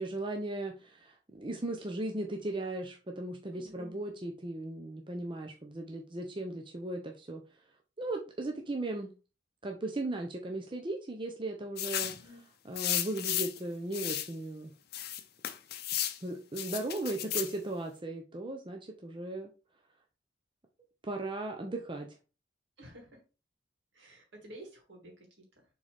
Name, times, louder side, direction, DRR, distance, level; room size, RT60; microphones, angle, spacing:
voice 1, 0.0-7.4 8.0-9.1 9.6-12.1 12.6-14.7 16.2-19.5 21.0-22.1, right 2 dB, 25° right, 2 dB, 0.7 m, -37 dB
voice 2, 3.5-4.0 12.2-12.4 22.8-23.2 23.9-25.7, right 1 dB, 70° right, 0 dB, 2.8 m, -51 dB
sound 1, 11.8-12.2 12.8-13.6 13.9-14.3 14.9-16.2 16.6-17.5, left 12 dB, 60° left, 0.7 m, -34 dB
6.8 x 4.0 x 3.5 m, 0.32 s
head